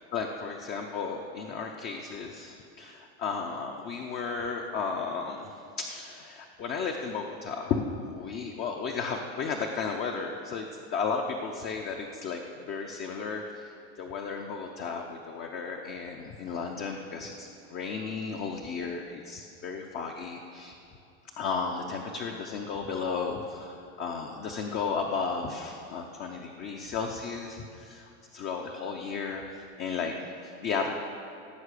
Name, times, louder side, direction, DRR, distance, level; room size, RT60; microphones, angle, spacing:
voice 1, 0.1-12.4 12.7-20.8 21.3-30.9, left 5 dB, 25° left, 2 dB, 0.6 m, -34 dB
16.5 x 5.9 x 8.2 m, 2.6 s
supercardioid pair, 165°, 36 cm